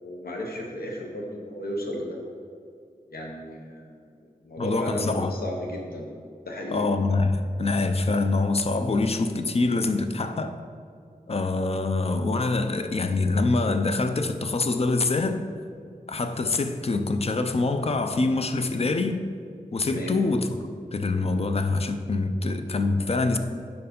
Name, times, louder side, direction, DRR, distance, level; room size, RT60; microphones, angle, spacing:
voice 1, 0.0-2.2 3.1-4.1 4.4-6.1 6.5-6.9 19.9-20.2, equal, 85° left, 0 dB, 0.8 m, -34 dB
voice 2, 4.6-5.3 6.7-10.5 11.3-15.4 16.1-19.2 19.7-20.6 20.9-23.4, left 3 dB, 40° left, 8 dB, 0.4 m, -25 dB
5.4 x 4.6 x 5.1 m, 2.3 s
wide cardioid pair, 85°, 15 cm